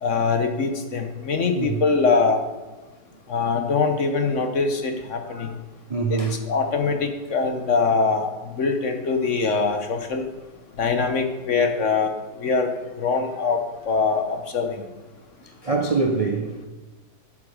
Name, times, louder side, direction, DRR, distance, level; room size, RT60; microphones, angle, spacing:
voice 1, 0.0-2.4 3.3-5.5 6.1-6.2 6.5-10.3 10.8-12.1 12.4-12.7 13.0-13.6 13.8-14.8, left 4 dB, 50° left, 6 dB, 1.1 m, -23 dB
voice 2, 5.3-5.6 5.9-6.4 15.4-16.7, right 4 dB, 60° right, 3 dB, 0.3 m, -25 dB
11.5 x 7.2 x 4.9 m, 1.2 s
omnidirectional pair, 1.9 m